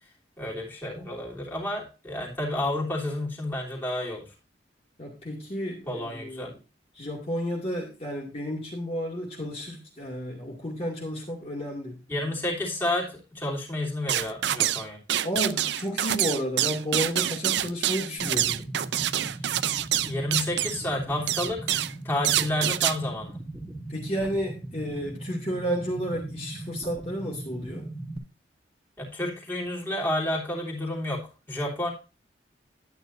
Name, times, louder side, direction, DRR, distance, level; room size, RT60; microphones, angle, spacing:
voice 1, 0.4-4.3 5.9-6.5 12.1-15.0 20.0-21.7 22.0-23.4 29.0-31.9, left 1 dB, 10° left, -3 dB, 3.1 m, -30 dB
voice 2, 5.0-6.5 6.9-12.3 15.2-18.6 21.7-21.9 23.9-27.9, equal, 35° left, -2 dB, 2.3 m, -32 dB
sound 1, 14.1-14.8 15.1-20.8 21.3-21.9 22.2-23.0, right 12 dB, 75° right, 0.5 m, -26 dB
sound 2, 18.2-28.2, right 1 dB, 5° right, 2.5 m, -39 dB
11.5 x 9.4 x 2.6 m, 0.31 s
head